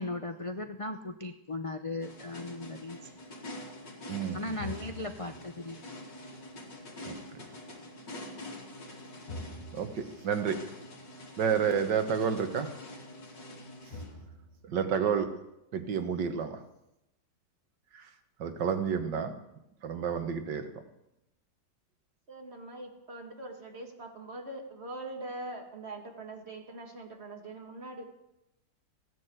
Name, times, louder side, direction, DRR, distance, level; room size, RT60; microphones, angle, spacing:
voice 1, 0.0-3.1 4.3-5.8, left 2 dB, 60° left, 6 dB, 0.3 m, -37 dB
sound 1, 2.0-14.7, left 1 dB, 80° left, 3.3 m, -45 dB
voice 2, 9.7-10.6 11.4-12.7 14.6-15.3 15.7-16.6 17.9-18.0 18.4-19.3 19.8-20.6, right 7 dB, 80° right, 8 dB, 1.9 m, -30 dB
voice 3, 22.3-28.0, right 2 dB, 35° right, 3 dB, 2.4 m, -42 dB
15.5 x 10.5 x 8.0 m, 0.88 s
omnidirectional pair, 1.9 m